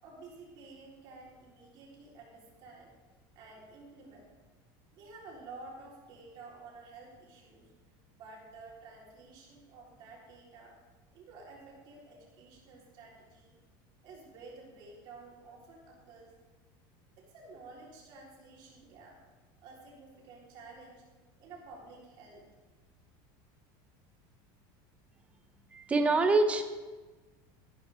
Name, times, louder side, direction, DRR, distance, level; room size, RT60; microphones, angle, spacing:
voice 1, 0.0-3.0 3.4-4.3 4.9-7.7 8.1-10.8 11.1-13.6 14.0-16.3 17.2-19.2 19.6-21.0 21.4-22.5, right 3 dB, 45° right, -4 dB, 4.1 m, -51 dB
voice 2, 25.7-26.6, right 3 dB, 10° right, 6 dB, 0.8 m, -25 dB
14.0 x 13.0 x 3.7 m, 1.3 s
cardioid pair, 170°, 11 cm